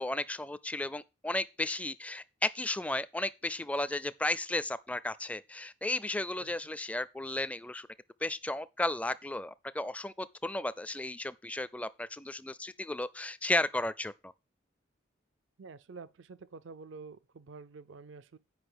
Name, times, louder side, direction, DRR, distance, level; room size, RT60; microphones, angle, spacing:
voice 1, 0.0-7.9 8.2-14.3, left 2 dB, 5° left, 0.4 m, -34 dB
voice 2, 15.6-18.4, right 4 dB, 70° right, 0.5 m, -48 dB
8.0 x 5.3 x 6.6 m
head